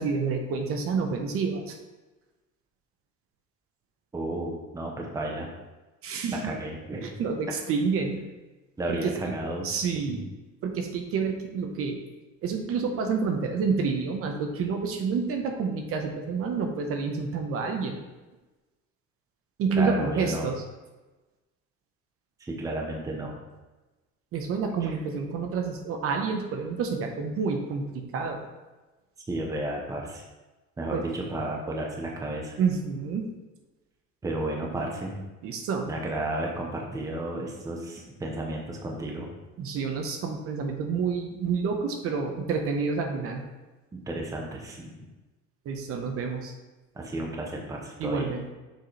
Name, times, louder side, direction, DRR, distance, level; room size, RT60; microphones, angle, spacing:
voice 1, 0.0-1.8 6.0-6.5 7.0-8.2 8.9-9.1 9.6-10.3 10.6-12.0 12.4-18.0 19.6-20.6 24.3-28.4 30.9-31.0 32.6-33.3 35.4-35.9 39.6-43.4 45.6-46.5 48.0-48.5, right 5 dB, 50° right, 4 dB, 0.9 m, -28 dB
voice 2, 4.1-5.5 6.3-7.1 8.8-10.2 19.8-20.5 22.4-23.4 24.8-24.9 29.3-30.2 30.8-32.5 34.2-35.2 35.9-39.3 43.9-45.1 46.9-48.3, right 1 dB, 10° right, 0 dB, 0.7 m, -33 dB
6.6 x 4.9 x 4.1 m, 1.2 s
cardioid pair, 165°, 30 cm